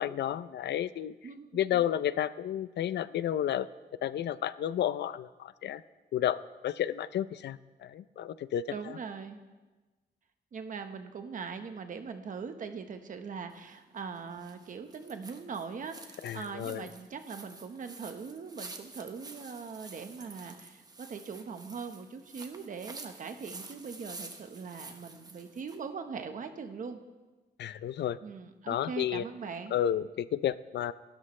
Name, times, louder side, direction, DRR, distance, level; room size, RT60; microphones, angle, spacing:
voice 1, 0.0-1.1 1.5-3.7 4.0-5.8 6.1-9.0 16.2-16.8 27.6-28.2 28.7-29.2 29.7-30.9, left 11 dB, 90° left, 16 dB, 0.5 m, -31 dB
voice 2, 1.2-1.9 8.7-9.4 10.5-27.0 28.2-29.8, right 5 dB, 50° right, 7 dB, 1.2 m, -41 dB
sound 1, 13.5-25.8, right 3 dB, 20° right, 1.1 m, -49 dB
28.0 x 13.0 x 3.3 m, 1.2 s
wide cardioid pair, 170°, 17 cm